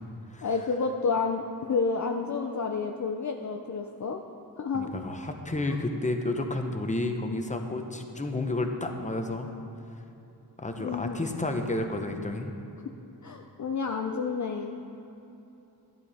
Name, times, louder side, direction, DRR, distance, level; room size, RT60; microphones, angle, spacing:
voice 1, 0.4-4.2 4.6-4.9 10.8-11.2 13.2-14.8, left 4 dB, 45° left, 3 dB, 0.6 m, -30 dB
voice 2, 4.7-9.5 10.6-12.5, left 2 dB, 20° left, 4 dB, 0.9 m, -31 dB
12.0 x 10.5 x 4.2 m, 2.9 s
wide cardioid pair, 105°, 40 cm